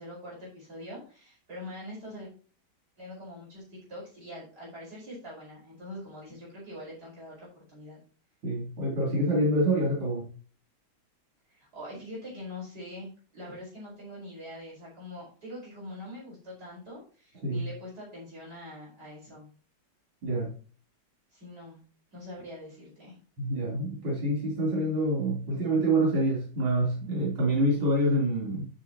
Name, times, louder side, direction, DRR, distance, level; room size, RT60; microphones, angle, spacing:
voice 1, 0.0-2.3 3.0-8.0 11.5-19.5 21.3-21.8 22.1-23.2, left 1 dB, 45° right, -6 dB, 5.6 m, -43 dB
voice 2, 8.4-10.3 17.4-17.7 20.2-20.5 23.4-28.7, right 1 dB, 85° right, -4 dB, 4.1 m, -26 dB
12.5 x 6.8 x 2.9 m, 0.38 s
omnidirectional pair, 2.3 m